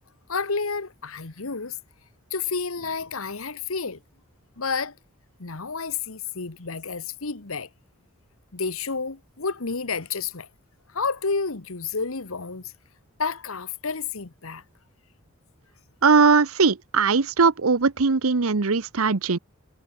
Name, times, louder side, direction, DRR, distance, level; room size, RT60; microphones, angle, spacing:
voice 1, 0.3-1.8 2.3-4.0 4.6-4.9 5.4-7.7 8.5-10.5 10.9-12.7 13.2-14.6, left 4 dB, 70° left, 1.4 m, -30 dB
voice 2, 16.0-19.4, right 4 dB, 75° right, 0.9 m, -20 dB
head